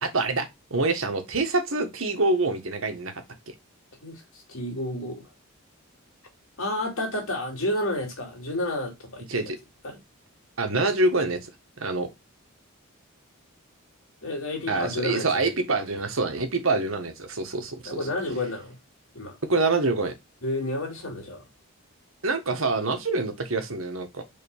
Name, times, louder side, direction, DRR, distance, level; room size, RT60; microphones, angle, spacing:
voice 1, 0.0-3.1 9.3-9.6 10.6-11.5 11.8-12.1 14.7-18.1 19.5-20.1 22.2-24.2, right 3 dB, 75° right, 1.5 m, -26 dB
voice 2, 4.0-5.2 6.6-9.4 9.8-10.0 14.2-15.4 17.8-18.8 19.1-19.4 20.4-21.4, left 1 dB, 75° left, 2.7 m, -30 dB
5.2 x 3.8 x 5.4 m
head